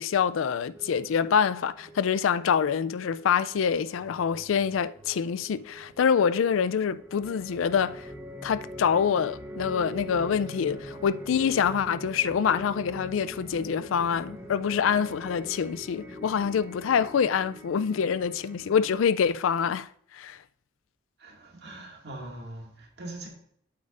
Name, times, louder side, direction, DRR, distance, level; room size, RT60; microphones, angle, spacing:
voice 1, 0.0-8.1 8.4-20.4, left 7 dB, 90° left, 0.4 m, -26 dB
sound 1, 0.7-18.9, equal, 10° right, 1.0 m, -43 dB
voice 2, 21.2-23.3, right 2 dB, 55° right, 2.1 m, -42 dB
8.6 x 8.0 x 2.5 m
head